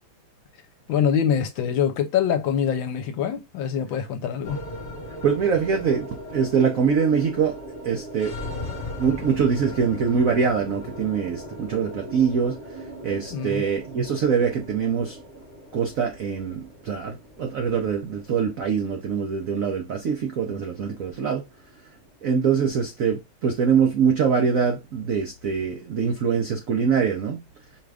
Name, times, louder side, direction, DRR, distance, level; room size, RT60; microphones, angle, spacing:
voice 1, 0.9-4.6 13.3-13.6, left 8 dB, 70° left, 1.3 m, -24 dB
sound 1, 4.4-22.8, left 1 dB, 40° left, 1.3 m, -39 dB
voice 2, 5.2-7.6 7.8-8.3 9.0-15.2 15.7-21.4 22.2-27.4, right 6 dB, 80° right, 0.7 m, -24 dB
5.0 x 2.4 x 3.3 m
omnidirectional pair, 2.3 m